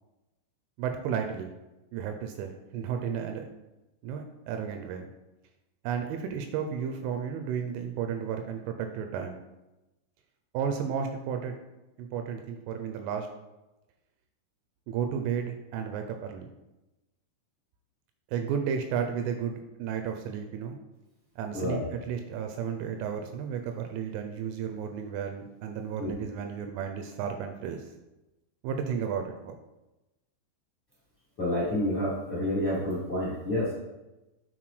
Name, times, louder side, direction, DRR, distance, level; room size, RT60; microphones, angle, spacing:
voice 1, 0.8-1.5 1.9-3.5 4.0-5.1 5.8-9.4 10.5-11.6 12.0-13.3 14.9-16.5 18.3-20.8 21.4-27.8 28.6-29.6, right 7 dB, 85° right, 5 dB, 2.8 m, -33 dB
voice 2, 21.5-21.8 26.0-26.1 31.4-33.8, left 1 dB, 50° left, -9 dB, 1.4 m, -29 dB
9.8 x 3.9 x 3.2 m, 1.0 s
omnidirectional pair, 5.7 m